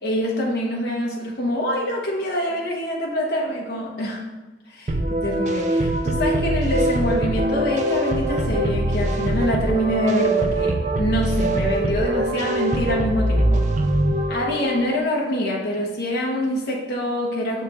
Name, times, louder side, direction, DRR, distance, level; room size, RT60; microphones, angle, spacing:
voice 1, 0.0-4.2 4.7-13.6 14.3-17.6, left 1 dB, 60° left, -2 dB, 1.0 m, -25 dB
sound 1, 4.9-15.0, right 1 dB, 40° right, 0.4 m, -22 dB
6.5 x 5.0 x 3.0 m, 1.2 s
head